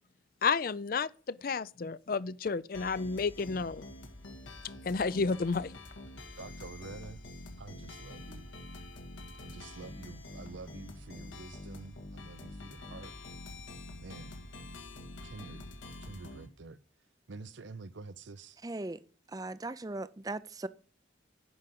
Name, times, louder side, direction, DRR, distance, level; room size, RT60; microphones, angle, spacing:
voice 1, 0.4-3.9 4.8-5.7, left 4 dB, 50° left, 0.4 m, -31 dB
sound 1, 2.7-16.5, left 2 dB, 90° left, 1.8 m, -46 dB
voice 2, 6.4-7.2 7.6-8.5 9.4-13.1 14.0-14.3 15.2-15.6 16.0-16.8 17.3-18.6, right 3 dB, 75° right, 0.7 m, -48 dB
voice 3, 18.6-19.0 19.3-20.7, right 2 dB, 20° right, 0.5 m, -38 dB
11.0 x 5.1 x 7.7 m
head